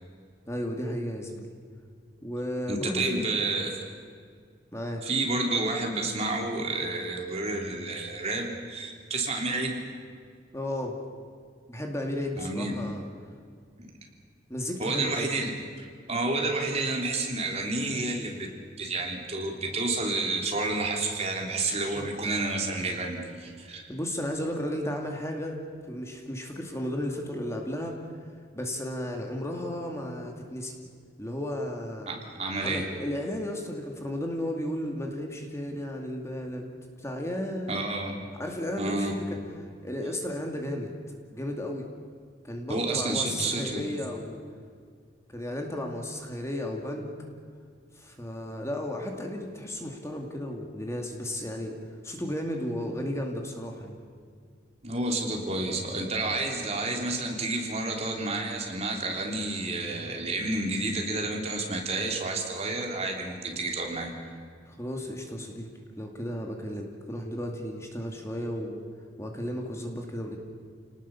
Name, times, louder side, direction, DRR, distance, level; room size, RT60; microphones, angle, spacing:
voice 1, 0.5-1.5 2.2-3.3 4.7-5.0 10.5-11.0 11.7-13.1 14.5-15.3 21.9-22.1 23.9-25.6 25.9-28.0 28.5-30.7 31.2-32.1 32.6-36.7 37.0-37.8 38.4-39.4 39.8-40.9 41.3-41.9 42.4-44.4 45.3-47.1 47.9-51.8 52.0-54.0 64.6-65.7 66.0-68.8 69.2-70.4, left 1 dB, 15° left, 2 dB, 2.3 m, -34 dB
voice 2, 2.7-3.8 5.0-9.8 12.4-12.9 13.8-13.9 14.8-15.5 15.8-18.5 18.8-23.9 32.1-32.9 37.7-38.2 38.8-39.1 42.7-43.9 54.8-64.1, right 2 dB, 35° right, 1 dB, 3.3 m, -30 dB
29.5 x 19.0 x 7.1 m, 2.1 s
head